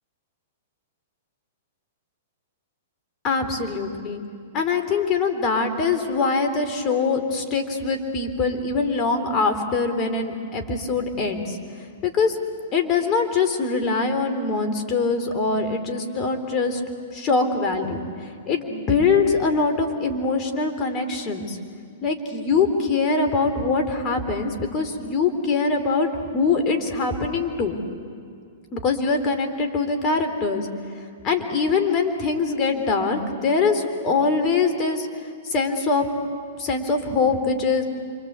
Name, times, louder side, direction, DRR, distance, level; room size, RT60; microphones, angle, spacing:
voice 1, 3.2-4.2 4.5-11.6 12.0-12.4 12.7-16.8 17.1-21.6 22.0-26.1 26.3-27.8 28.7-30.7 31.2-35.1 35.4-36.0 36.6-37.8, left 4 dB, 35° left, 6 dB, 3.8 m, -23 dB
28.0 x 24.5 x 8.3 m, 2.3 s
hypercardioid pair, 115°, 0 cm